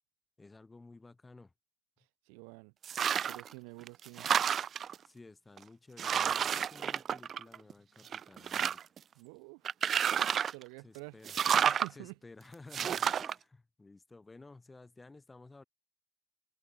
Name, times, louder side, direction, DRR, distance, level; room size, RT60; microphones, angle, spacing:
voice 1, 0.4-1.5 5.0-8.8 10.8-11.4 11.9-15.6, left 3 dB, 20° left, 2.4 m, -54 dB
voice 2, 2.3-2.7 3.3-4.3 9.2-9.7 10.5-11.2 11.6-12.2, right 40 dB or more, 80° right, 2.6 m, -48 dB
sound 1, 2.8-3.5 3.9-4.9 5.6-5.7 6.0-7.7 8.1-9.0 9.6-10.6 11.2-11.9 12.7-13.3, right 8 dB, 45° right, 0.3 m, -30 dB
supercardioid pair, 75°, 0 cm